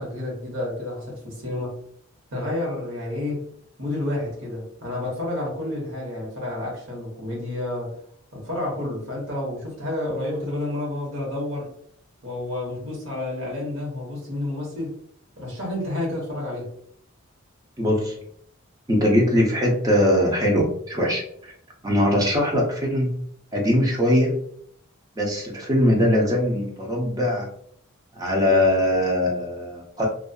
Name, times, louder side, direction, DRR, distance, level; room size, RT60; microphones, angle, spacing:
voice 1, 0.0-1.7 2.3-3.4 3.8-8.0 8.3-11.7 12.2-14.9 15.4-16.7, left 1 dB, 65° right, -3 dB, 1.0 m, -30 dB
voice 2, 17.8-18.2 18.9-21.5 21.8-23.1 23.5-24.4 25.2-27.5 28.1-30.1, left 1 dB, 15° right, -1 dB, 0.6 m, -21 dB
2.6 x 2.3 x 2.2 m, 0.65 s
head